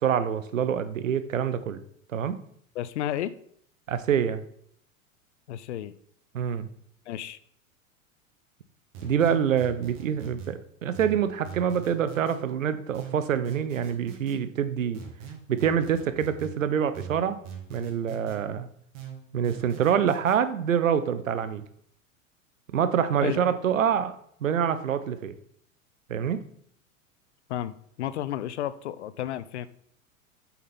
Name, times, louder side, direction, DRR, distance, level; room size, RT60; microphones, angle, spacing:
voice 1, 0.0-1.8 2.1-2.4 3.9-4.4 6.3-6.7 9.0-15.0 15.5-17.4 17.7-18.7 19.3-21.6 22.7-24.1 24.4-25.3 26.1-26.4, right 8 dB, 70° right, 12 dB, 1.0 m, -26 dB
voice 2, 2.7-3.3 5.5-5.9 7.1-7.4 23.2-23.4 27.5-29.7, left 12 dB, 55° left, 15 dB, 0.7 m, -32 dB
sound 1, 8.9-10.5 10.9-12.4 12.9-14.4 14.9-16.5 16.9-18.4 18.9-20.4, right 7 dB, 45° right, 2.5 m, -42 dB
8.4 x 7.2 x 4.3 m, 0.66 s
figure-of-eight pair, 90°, 41 cm